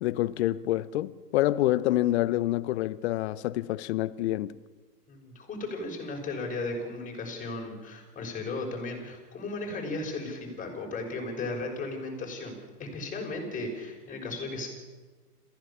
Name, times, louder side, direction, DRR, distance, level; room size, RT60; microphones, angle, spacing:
voice 1, 0.0-4.5, left 15 dB, 40° left, 0.9 m, -27 dB
voice 2, 5.1-14.7, left 2 dB, 15° left, 6.1 m, -35 dB
27.5 x 15.5 x 7.2 m
hypercardioid pair, 125°, 48 cm